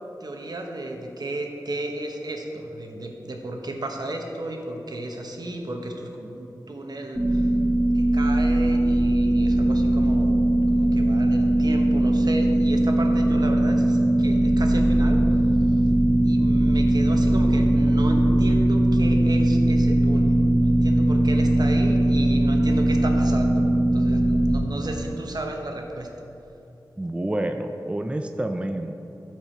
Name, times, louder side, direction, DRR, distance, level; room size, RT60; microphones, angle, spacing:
voice 1, 0.2-7.5 7.9-15.4 15.7-15.8 16.2-26.1, right 1 dB, 65° right, 2 dB, 1.0 m, -34 dB
sound 1, 7.1-24.6, right 1 dB, 25° left, 1.5 m, -20 dB
voice 2, 27.0-28.9, right 1 dB, 15° right, 6 dB, 0.4 m, -28 dB
13.5 x 4.7 x 4.4 m, 3.0 s
wide cardioid pair, 80°, 7 cm